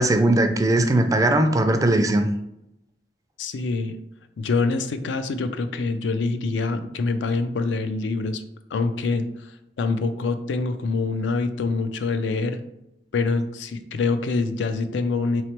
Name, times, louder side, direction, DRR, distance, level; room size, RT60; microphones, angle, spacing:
voice 1, 0.0-2.3, right 1 dB, 20° right, 7 dB, 0.3 m, -19 dB
voice 2, 3.4-4.0 4.4-8.4 8.7-9.5 9.8-12.6 13.1-15.4, left 3 dB, 80° left, 9 dB, 0.4 m, -25 dB
3.9 x 3.1 x 2.9 m, 0.82 s
head